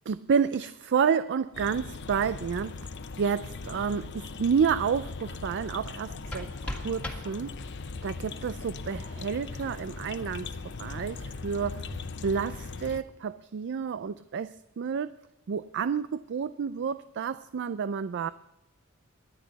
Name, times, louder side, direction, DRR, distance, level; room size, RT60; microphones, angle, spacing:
voice 1, 0.1-2.9 3.2-7.6 8.0-10.5 10.8-11.9 12.2-15.1 15.5-18.3, right 6 dB, 55° right, 14 dB, 0.4 m, -30 dB
sound 1, 1.5-13.0, left 4 dB, 55° left, 0.7 m, -39 dB
sound 2, 5.9-7.9, left 1 dB, 5° left, 1.9 m, -40 dB
Bowed string instrument, 11.8-14.2, equal, 85° right, 1.4 m, -52 dB
23.5 x 9.5 x 4.0 m, 0.96 s
head